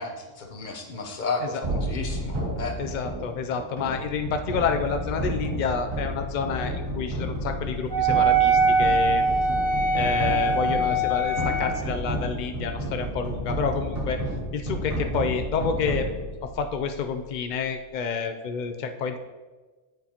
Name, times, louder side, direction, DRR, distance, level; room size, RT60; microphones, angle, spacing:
voice 1, 0.0-2.7, left 3 dB, 40° left, 3 dB, 0.9 m, -33 dB
sound 1, 1.6-16.9, equal, 75° right, 2.8 m, -31 dB
voice 2, 2.8-9.2 9.9-14.2 14.5-16.1 16.4-19.2, left 5 dB, 80° left, 6 dB, 0.4 m, -29 dB
Wind instrument woodwind instrument, 7.9-11.8, right 3 dB, 5° left, 1.6 m, -22 dB
8.4 x 8.1 x 2.9 m, 1.3 s
omnidirectional pair, 1.4 m